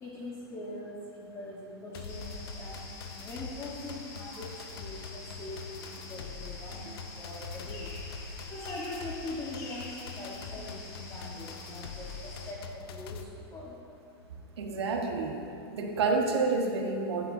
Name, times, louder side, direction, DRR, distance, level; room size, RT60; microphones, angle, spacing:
voice 1, 0.0-2.8 3.2-4.4 4.7-5.6 6.1-7.9 8.5-12.1 12.5-13.2 13.5-13.8, left 1 dB, 20° left, -5 dB, 1.2 m, -42 dB
sound 1, 1.9-13.2, left 5 dB, 65° left, 0.7 m, -43 dB
sound 2, 2.1-12.5, left 3 dB, 45° left, 1.8 m, -47 dB
voice 2, 14.6-15.4 15.7-17.3, right 3 dB, 80° right, 2 dB, 1.3 m, -29 dB
11.0 x 9.3 x 2.7 m, 2.6 s
hypercardioid pair, 135°, 13 cm